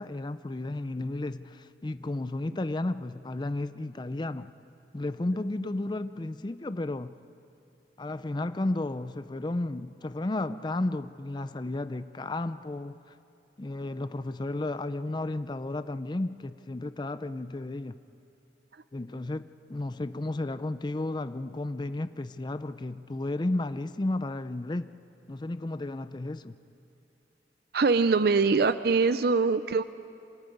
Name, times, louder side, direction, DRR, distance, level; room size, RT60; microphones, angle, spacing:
voice 1, 0.0-4.5 4.9-7.1 8.0-13.2 13.6-18.0 18.9-24.9 25.3-26.5, left 2 dB, 25° left, 0.4 m, -33 dB
voice 2, 27.7-29.8, right 4 dB, 55° right, 0.5 m, -23 dB
26.5 x 14.5 x 9.3 m
head